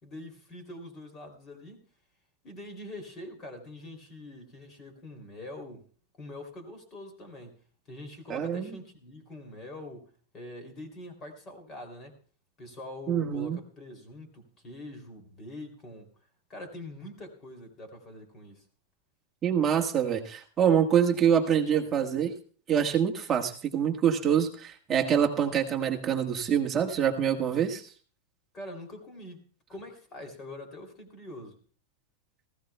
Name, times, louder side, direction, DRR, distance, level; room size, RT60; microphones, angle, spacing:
voice 1, 0.0-1.8 2.4-5.9 6.2-7.6 7.9-12.1 12.6-16.1 16.5-18.6 28.5-29.4 29.7-31.6, left 1 dB, 20° left, 5 dB, 2.9 m, -44 dB
voice 2, 8.3-8.7 13.1-13.6 19.4-22.3 22.7-27.8, right 8 dB, 15° right, 1 dB, 1.4 m, -25 dB
19.0 x 15.5 x 2.2 m, 0.41 s
supercardioid pair, 170°, 0 cm